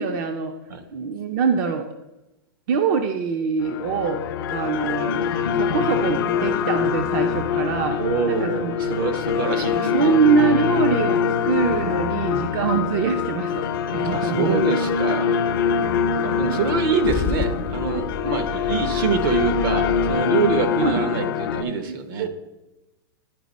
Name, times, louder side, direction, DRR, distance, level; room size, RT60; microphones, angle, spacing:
voice 1, 0.0-0.5 0.9-1.9 2.7-5.3 5.5-8.0 8.3-9.0 9.8-14.6 20.8-21.1 21.9-22.3, right 6 dB, 50° right, 5 dB, 0.6 m, -24 dB
sound 1, 3.6-21.6, left 7 dB, 65° left, 0.6 m, -24 dB
voice 2, 8.0-10.2 14.0-15.5 16.2-22.3, right 5 dB, 65° right, 9 dB, 1.0 m, -25 dB
Car / Engine starting / Idling, 16.7-20.1, left 5 dB, 20° left, 0.5 m, -31 dB
10.5 x 4.4 x 4.1 m, 0.98 s
hypercardioid pair, 140°, 12 cm